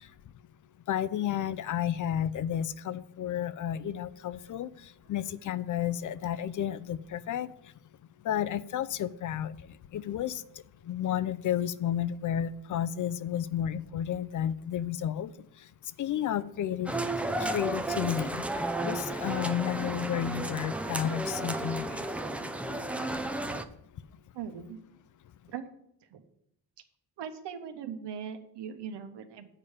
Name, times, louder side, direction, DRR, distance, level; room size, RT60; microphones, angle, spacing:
voice 1, 0.9-4.7 5.1-7.5 8.2-9.6 9.9-10.4 10.9-15.3 16.0-16.9 17.4-18.4 18.8-22.1, left 10 dB, 45° left, 16 dB, 0.5 m, -31 dB
sound 1, 16.9-23.6, right 1 dB, 5° right, 0.4 m, -33 dB
voice 2, 24.3-24.8 25.5-25.6 26.1-26.2 27.2-29.6, right 7 dB, 75° right, 7 dB, 1.2 m, -40 dB
8.9 x 4.9 x 7.1 m, 0.75 s
cardioid pair, 115°, 42 cm